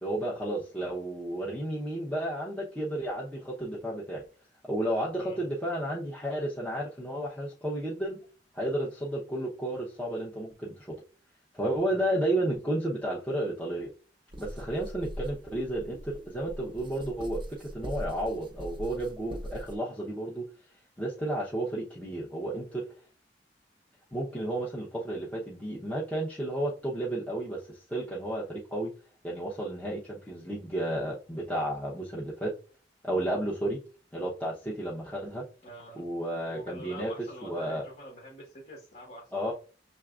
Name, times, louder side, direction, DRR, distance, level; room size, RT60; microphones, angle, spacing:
voice 1, 0.0-4.2 4.6-8.2 8.5-10.9 11.5-13.9 14.4-20.5 21.0-22.8 24.1-28.9 29.2-32.5 33.0-33.8 34.1-35.4 36.0-37.1 37.4-37.8 39.3-39.5, right 1 dB, 10° left, -5 dB, 0.8 m, -32 dB
sound 1, 14.3-19.8, equal, 30° right, 0.7 m, -41 dB
voice 2, 35.6-36.1 36.5-39.5, equal, 50° left, -1 dB, 1.3 m, -46 dB
6.3 x 3.3 x 2.4 m, 0.37 s
head